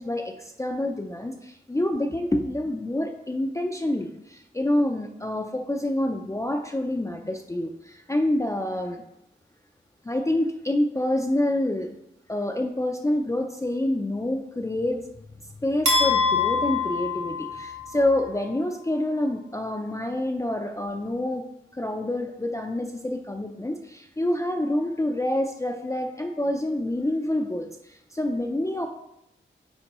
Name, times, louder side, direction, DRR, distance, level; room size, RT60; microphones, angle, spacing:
voice 1, 0.0-9.0 10.0-11.9 12.3-15.0 15.6-21.5 21.7-28.9, left 1 dB, 15° left, 3 dB, 0.4 m, -27 dB
sound 1, 15.9-18.0, left 4 dB, 75° right, 1.6 m, -24 dB
9.6 x 3.8 x 3.0 m, 0.83 s
wide cardioid pair, 100°, 21 cm